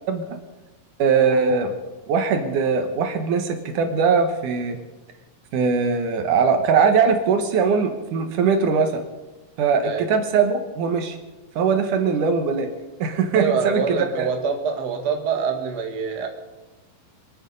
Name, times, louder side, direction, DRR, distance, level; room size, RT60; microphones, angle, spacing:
voice 1, 0.1-0.4 1.0-1.7 2.1-4.8 5.5-9.0 9.6-11.2 11.6-12.7 13.0-14.3, right 5 dB, 70° right, 7 dB, 2.6 m, -21 dB
voice 2, 13.3-16.3, right 6 dB, 45° right, 4 dB, 1.4 m, -25 dB
24.5 x 9.3 x 5.4 m, 1.1 s
omnidirectional pair, 4.1 m